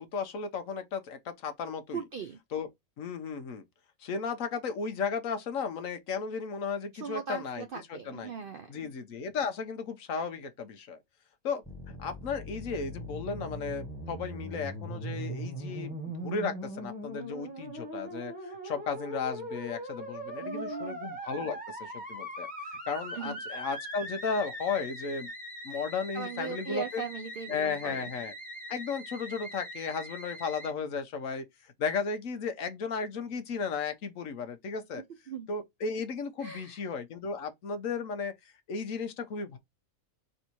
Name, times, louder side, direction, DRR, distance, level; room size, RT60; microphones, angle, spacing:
voice 1, 0.0-2.0 2.5-2.7 3.0-3.6 4.0-8.3 8.7-11.0 11.4-22.5 22.9-25.3 25.6-27.0 27.5-28.3 28.7-31.4 31.8-35.0 35.5-39.6, left 5 dB, 70° left, 1.2 m, -35 dB
voice 2, 1.9-2.4 6.9-8.9 20.4-21.0 23.1-23.4 26.1-28.1 35.3-35.5 36.4-36.8, right 6 dB, 65° right, 0.5 m, -39 dB
Musical instrument, 11.6-30.7, equal, 5° right, 1.4 m, -41 dB
4.0 x 2.7 x 4.4 m
omnidirectional pair, 1.5 m